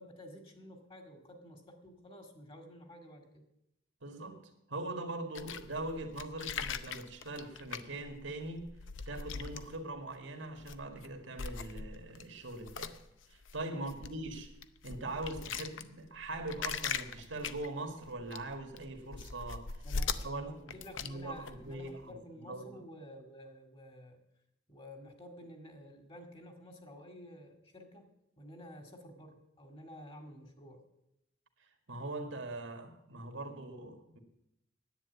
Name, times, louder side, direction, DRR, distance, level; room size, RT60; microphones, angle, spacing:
voice 1, 0.0-3.4 13.7-14.1 19.8-24.2 24.7-28.1 28.4-30.8, equal, 30° left, 4 dB, 2.0 m, -51 dB
voice 2, 4.0-4.4 4.7-8.7 9.1-13.0 13.3-14.5 14.8-19.8 20.2-20.5 21.0-22.8 31.6-34.2, right 2 dB, 85° right, 5 dB, 1.9 m, -42 dB
sound 1, 5.4-10.1 10.6-11.1 11.4-22.1, left 5 dB, 85° left, 0.7 m, -41 dB
10.5 x 9.1 x 8.2 m, 0.84 s
head